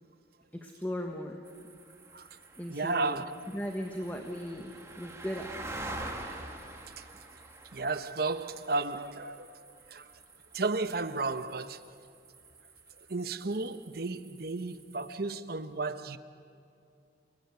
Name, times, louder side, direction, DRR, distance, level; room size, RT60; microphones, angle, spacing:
voice 1, 0.5-1.4 2.6-3.2 3.5-5.5, equal, 10° left, 1.4 m, -37 dB
sound 1, 1.5-15.2, right 2 dB, 15° right, 2.3 m, -47 dB
voice 2, 2.7-3.3 6.3-6.5 7.0-7.1 7.7-10.1 10.5-11.9 13.0-16.2, right 3 dB, 55° right, 0.9 m, -34 dB
29.0 x 20.0 x 9.6 m
head